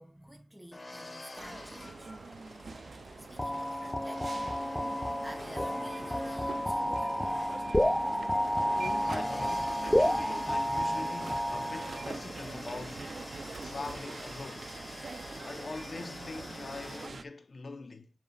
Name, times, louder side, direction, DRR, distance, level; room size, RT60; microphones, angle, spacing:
voice 1, 0.0-2.4 3.2-7.2, equal, 5° right, 1.3 m, -50 dB
sound 1, 0.7-17.1, left 2 dB, 30° left, 2.8 m, -47 dB
sound 2, 1.4-17.2, right 4 dB, 65° right, 0.7 m, -44 dB
sound 3, 3.4-12.1, equal, 10° left, 0.5 m, -31 dB
voice 2, 8.7-13.1 13.6-14.7 15.4-18.1, left 3 dB, 55° left, 1.0 m, -43 dB
7.5 x 4.2 x 4.0 m
wide cardioid pair, 85°, 0 cm